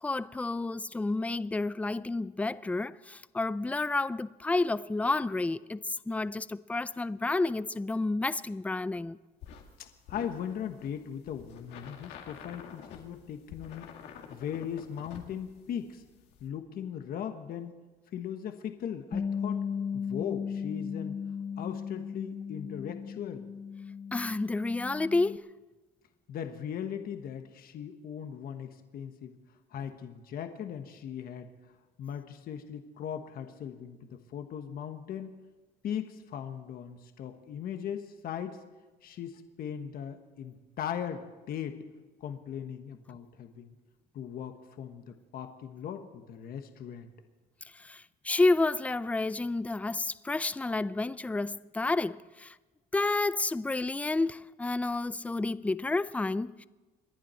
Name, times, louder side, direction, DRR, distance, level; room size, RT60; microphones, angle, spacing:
voice 1, 0.0-9.2 24.1-25.5 47.8-52.5 52.9-56.7, left 2 dB, 10° left, 0.4 m, -30 dB
sound 1, 9.4-16.5, left 7 dB, 85° left, 2.2 m, -49 dB
voice 2, 9.8-13.9 14.3-16.0 16.4-17.8 18.1-19.6 19.9-21.2 21.6-23.5 26.3-29.3 29.7-31.5 32.0-35.4 35.8-38.6 39.0-41.8 42.2-43.7 44.1-47.1, left 8 dB, 60° left, 1.3 m, -39 dB
Bass guitar, 19.1-25.4, left 6 dB, 25° left, 0.8 m, -36 dB
27.5 x 11.0 x 4.4 m
cardioid pair, 110°, 17 cm